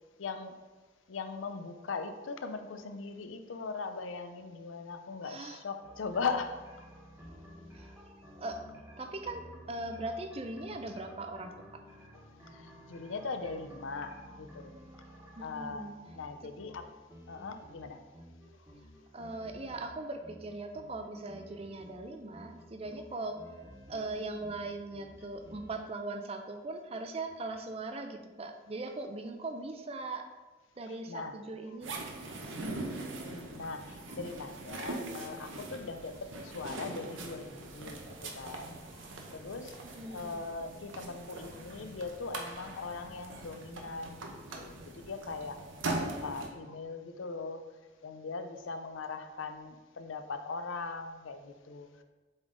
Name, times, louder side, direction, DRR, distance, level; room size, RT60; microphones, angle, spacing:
voice 1, 0.2-0.6 1.1-6.9 12.5-14.7 15.4-15.9 16.1-16.9 17.3-18.0 31.1-31.4 33.1-39.8 40.1-45.6 45.9-47.6 48.0-52.0, left 4 dB, 90° left, 8 dB, 0.6 m, -40 dB
voice 2, 5.2-5.6 7.7-8.6 9.0-11.8 15.4-15.9 16.4-16.5 19.1-30.3 30.8-32.0 32.4-33.0 39.8-40.4, right 2 dB, 30° right, 6 dB, 0.5 m, -40 dB
sound 1, 5.8-25.8, equal, 10° right, 1.2 m, -53 dB
sound 2, 31.8-46.5, right 2 dB, 90° right, 0.9 m, -42 dB
7.9 x 3.8 x 3.8 m, 1.2 s
head